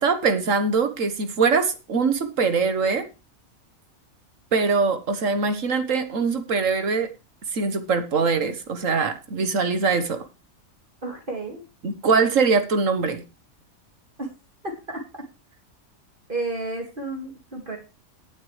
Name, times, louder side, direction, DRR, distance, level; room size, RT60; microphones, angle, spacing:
voice 1, 0.0-3.1 4.5-7.1 7.5-10.2 11.8-13.2, right 4 dB, 70° right, 9 dB, 1.7 m, -22 dB
voice 2, 11.0-11.6 14.2-14.3 14.6-15.0 16.3-17.8, right 2 dB, 40° right, 1 dB, 2.4 m, -31 dB
18.5 x 7.5 x 3.3 m, 0.30 s
omnidirectional pair, 1.4 m